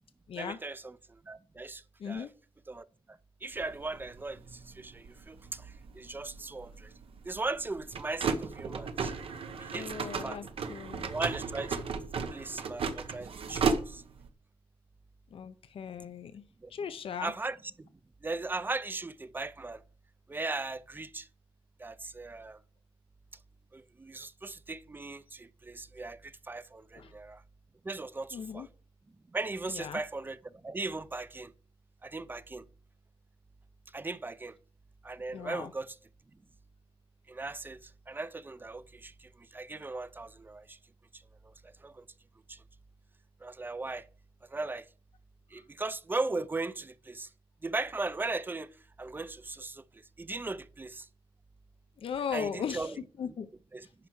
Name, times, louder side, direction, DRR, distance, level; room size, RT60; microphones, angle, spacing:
voice 1, 0.4-2.3 2.7-6.9 7.2-9.1 9.6-9.9 10.2-10.4 11.1-11.8 12.3-14.0 16.6-16.7 17.2-17.9 18.2-19.8 20.3-21.3 21.8-22.6 23.7-27.4 27.8-28.7 29.3-31.5 32.0-32.6 33.9-34.6 35.0-36.0 37.3-40.8 41.1-41.2 41.6-42.0 42.5-42.6 43.4-44.0 44.5-44.8 45.5-47.3 47.6-48.7 49.0-49.8 50.2-51.1 52.3-53.0 53.7-53.9, right 3 dB, 20° right, 0.5 m, -38 dB
sound 1, 3.5-14.3, right 5 dB, 75° right, 1.0 m, -36 dB
voice 2, 9.7-11.1 15.3-16.4 16.7-17.3 27.0-27.1 28.3-28.7 29.7-30.0 35.3-35.7 52.0-52.9 53.2-53.5, left 7 dB, 70° left, 0.6 m, -37 dB
11.0 x 4.5 x 6.2 m
wide cardioid pair, 130°, 10 cm